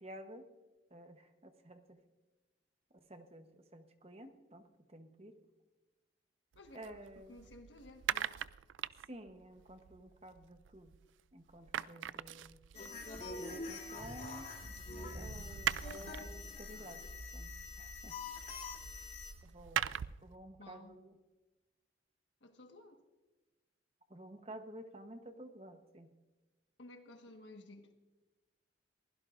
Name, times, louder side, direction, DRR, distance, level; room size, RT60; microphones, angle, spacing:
voice 1, 0.0-0.4 0.9-1.8 3.1-4.6 4.9-5.3 6.7-7.3 9.1-10.9 11.3-12.6 13.4-14.4 15.1-17.0 17.3-17.5 17.8-18.1 19.4-19.9 20.2-21.1 24.1-26.1, right 1 dB, 30° right, 7 dB, 0.9 m, -52 dB
voice 2, 6.5-8.3 20.6-21.0 22.4-23.0 26.8-27.9, left 2 dB, 75° left, 5 dB, 1.4 m, -55 dB
sound 1, 6.5-11.2 11.5-20.3, right 10 dB, 80° right, 0.3 m, -43 dB
sound 2, 12.7-19.3, left 3 dB, 40° left, 3.4 m, -45 dB
22.5 x 16.0 x 2.5 m, 1.2 s
head